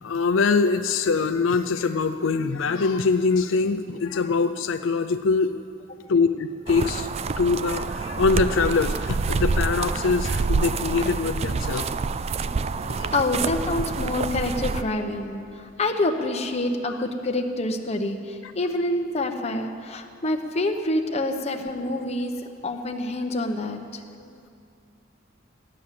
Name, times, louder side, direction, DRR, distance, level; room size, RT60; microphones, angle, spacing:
voice 1, 0.0-5.5 6.1-7.1 7.4-11.9 12.9-13.1 16.9-17.0, left 4 dB, 75° left, 8 dB, 0.5 m, -23 dB
sound 1, 6.7-14.8, right 4 dB, 30° right, 0.3 m, -27 dB
voice 2, 13.1-15.4 15.8-22.3 22.6-23.8, left 2 dB, 35° left, 4 dB, 1.0 m, -26 dB
15.0 x 9.9 x 7.5 m, 2.4 s
head